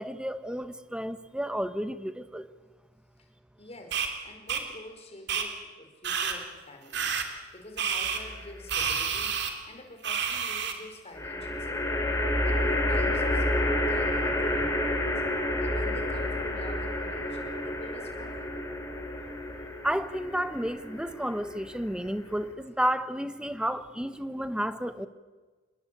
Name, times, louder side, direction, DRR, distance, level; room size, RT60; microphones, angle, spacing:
voice 1, 0.0-2.5 19.8-25.1, equal, 5° right, 12 dB, 1.1 m, -31 dB
voice 2, 3.6-12.0 12.4-15.1 15.6-18.7, left 1 dB, 30° left, 4 dB, 5.1 m, -47 dB
sound 1, 3.9-4.1 4.5-4.6 5.3-5.4 6.0-6.3 6.9-7.2 7.8-8.2 8.7-9.5 10.0-10.7, right 7 dB, 60° right, 3.3 m, -29 dB
sound 2, 8.0-8.7 11.1-22.5, left 1 dB, 15° left, 3.7 m, -30 dB
27.5 x 21.0 x 8.6 m, 1.3 s
head